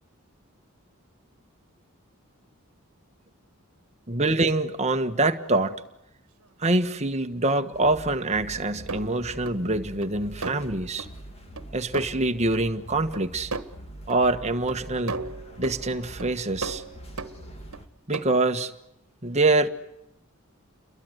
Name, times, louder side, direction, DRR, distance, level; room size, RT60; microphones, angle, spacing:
voice 1, 4.1-5.8 6.6-11.1 11.7-13.5 14.1-15.2 15.6-16.8 18.1-18.7 19.2-19.7, right 2 dB, 30° right, 1.5 m, -25 dB
sound 1, 7.7-17.9, right 1 dB, 30° left, 2.5 m, -44 dB
sound 2, 8.9-9.6 10.0-10.1 10.4-10.7 11.0-11.1 11.6-11.7 11.9-12.1 12.5-12.6 13.1-13.2 13.5-13.7 14.1-14.2 14.7-14.8 15.1-15.8 16.2-16.3 16.6-17.8 18.1-18.3, right 3 dB, 80° right, 1.5 m, -35 dB
30.0 x 22.5 x 8.1 m
head